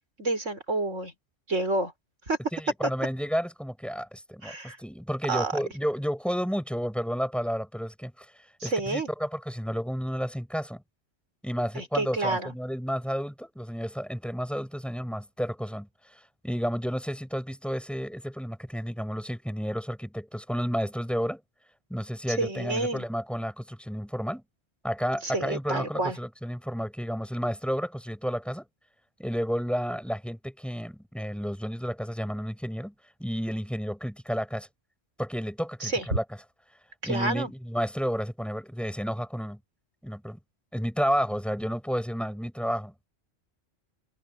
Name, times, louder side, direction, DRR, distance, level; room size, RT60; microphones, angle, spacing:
voice 1, 0.2-1.1 1.5-1.9 2.3-2.4 4.4-4.8 5.3-5.5 8.6-9.1 11.7-12.5 22.4-23.0 25.2-26.2 35.8-36.1 37.0-37.5, right 2 dB, 80° right, 5.1 m, -29 dB
voice 2, 2.5-8.3 8.6-10.8 11.4-21.4 21.9-24.4 24.8-28.7 29.2-32.9 33.2-34.7 35.2-36.2 37.0-39.6 40.0-40.4 40.7-42.9, equal, ahead, 5.4 m, -31 dB
omnidirectional pair, 1.3 m